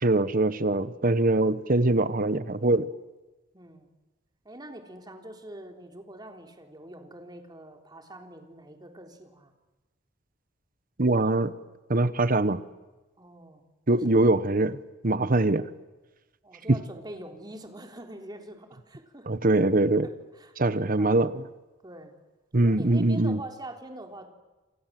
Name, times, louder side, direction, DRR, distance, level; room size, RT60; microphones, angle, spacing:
voice 1, 0.0-2.9 11.0-11.5 11.9-12.6 13.9-14.8 15.0-15.7 16.7-16.8 19.3-20.1 20.6-21.4 22.5-23.4, right 2 dB, 50° right, 1.1 m, -23 dB
voice 2, 0.7-1.0 3.5-3.9 4.4-9.5 13.2-13.6 13.9-14.1 16.4-19.3 20.0-21.1 21.8-22.1 22.7-24.3, right 1 dB, 20° right, 3.7 m, -44 dB
28.0 x 27.5 x 7.7 m
head